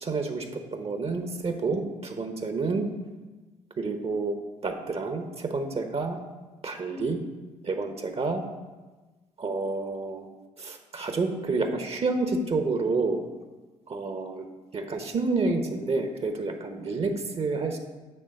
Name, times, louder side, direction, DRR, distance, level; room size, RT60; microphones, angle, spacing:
voice 1, 0.0-2.8 3.8-4.3 4.6-6.2 6.6-7.2 7.6-8.4 9.4-10.3 10.6-13.2 13.9-14.4 14.7-17.8, right 3 dB, 40° right, 5 dB, 0.9 m, -29 dB
9.2 x 3.4 x 5.3 m, 1.2 s
hypercardioid pair, 55°, 15 cm